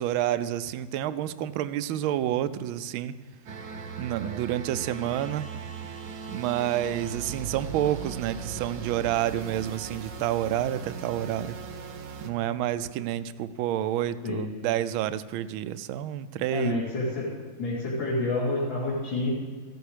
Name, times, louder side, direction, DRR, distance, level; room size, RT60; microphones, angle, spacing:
voice 1, 0.0-3.1 4.0-5.5 6.3-11.6 12.2-16.8, right 12 dB, 80° right, 14 dB, 1.4 m, -29 dB
sound 1, 3.5-12.3, right 6 dB, 55° right, 1.1 m, -39 dB
voice 2, 16.5-17.3 17.6-19.3, left 2 dB, 70° left, -9 dB, 3.4 m, -28 dB
15.0 x 11.5 x 4.9 m, 1.4 s
omnidirectional pair, 2.2 m